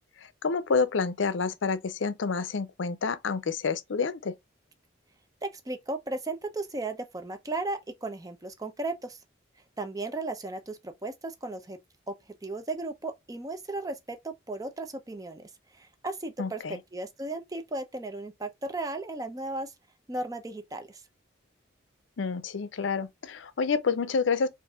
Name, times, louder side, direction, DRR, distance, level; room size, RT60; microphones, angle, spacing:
voice 1, 0.4-4.3 16.4-16.8 22.2-24.5, left 5 dB, 70° left, 0.5 m, -28 dB
voice 2, 5.4-9.2 9.8-11.8 12.1-12.2 12.4-19.7 20.1-21.0, right 2 dB, 20° right, 0.6 m, -35 dB
4.5 x 2.6 x 2.3 m
head